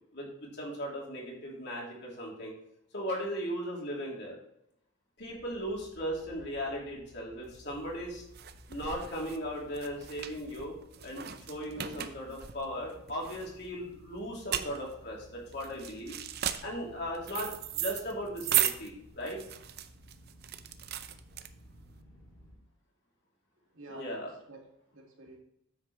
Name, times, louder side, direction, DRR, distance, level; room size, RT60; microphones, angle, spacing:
voice 1, 0.1-2.5 2.9-4.4 5.2-8.2 8.7-10.8 11.0-16.2 16.6-19.4 23.9-24.3, equal, 50° left, -3 dB, 3.0 m, -37 dB
sound 1, 5.2-22.6, equal, 20° left, 2.6 m, -56 dB
sound 2, 7.5-21.9, right 11 dB, 45° right, 0.5 m, -36 dB
voice 2, 23.7-25.4, right 2 dB, 70° right, 1 dB, 2.1 m, -50 dB
9.6 x 8.0 x 3.1 m, 0.78 s
head